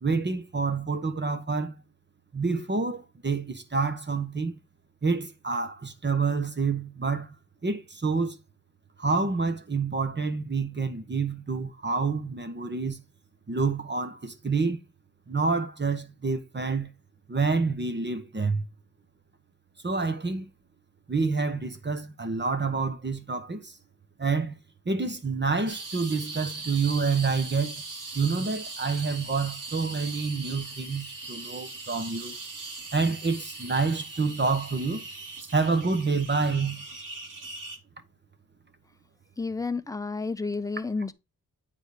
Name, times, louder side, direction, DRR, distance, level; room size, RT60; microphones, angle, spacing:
voice 1, 0.0-1.7 2.3-4.5 5.0-7.3 7.6-8.4 9.0-13.0 13.5-14.8 15.3-16.9 17.3-18.6 19.8-20.5 21.1-23.8 24.2-24.6 24.8-27.7 28.1-32.4 32.9-35.0 35.5-36.8, right 4 dB, 35° right, 1.2 m, -28 dB
sound 1, 25.7-37.8, right 3 dB, 70° right, 2.0 m, -40 dB
voice 2, 39.4-41.1, left 4 dB, 10° left, 0.6 m, -31 dB
9.0 x 3.5 x 5.1 m
cardioid pair, 60°, 33 cm